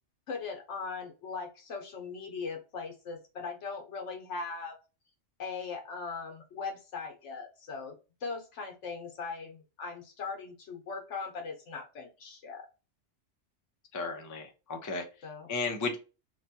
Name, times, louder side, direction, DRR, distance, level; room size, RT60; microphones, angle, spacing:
voice 1, 0.3-4.8 5.4-7.9 8.2-12.7 15.2-15.5, left 4 dB, 80° left, 3 dB, 1.2 m, -39 dB
voice 2, 13.9-15.0 15.5-16.0, left 3 dB, 30° left, 3 dB, 0.4 m, -34 dB
3.1 x 2.2 x 2.7 m, 0.30 s
omnidirectional pair, 1.2 m